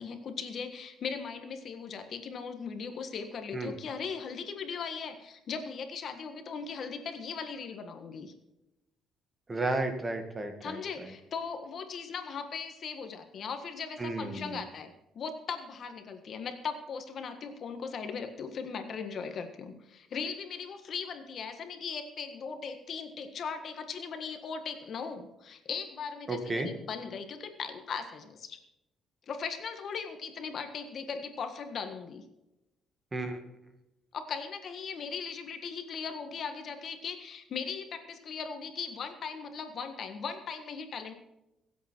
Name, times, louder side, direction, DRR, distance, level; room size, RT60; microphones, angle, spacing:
voice 1, 0.0-8.3 10.6-28.6 29.3-32.2 34.1-41.1, left 6 dB, 50° left, 7 dB, 1.6 m, -38 dB
voice 2, 9.5-11.1 14.0-14.6 26.3-26.7 33.1-33.4, right 2 dB, 20° right, 6 dB, 2.1 m, -33 dB
24.0 x 8.3 x 4.6 m, 0.93 s
cardioid pair, 135°, 0 cm